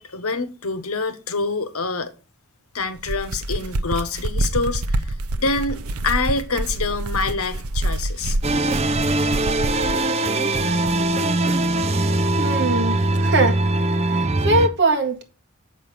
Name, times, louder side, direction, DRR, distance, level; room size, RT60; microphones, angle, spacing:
voice 1, 0.0-2.1 2.7-8.4, left 3 dB, 80° left, 1.2 m, -26 dB
sound 1, 2.9-10.1, right 2 dB, 85° right, 0.7 m, -26 dB
sound 2, 8.4-14.7, right 2 dB, 30° right, 0.5 m, -21 dB
voice 2, 12.4-15.2, right 2 dB, 55° right, 1.7 m, -22 dB
7.4 x 5.5 x 6.6 m
head